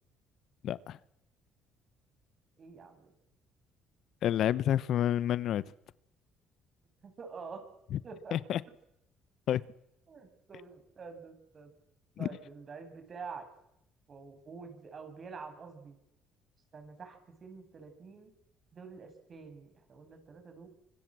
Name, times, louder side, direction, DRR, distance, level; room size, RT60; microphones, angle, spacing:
voice 1, 0.6-1.0 4.2-5.6 8.3-8.6 9.5-9.6 12.2-12.3, left 11 dB, 65° left, 0.9 m, -29 dB
voice 2, 2.6-3.1 7.0-7.6 8.0-8.4 10.1-11.7 12.2-13.5 14.1-16.0 16.7-18.3 18.7-20.7, right 5 dB, 45° right, 7.3 m, -47 dB
25.5 x 24.5 x 7.7 m
supercardioid pair, 80°, 0 cm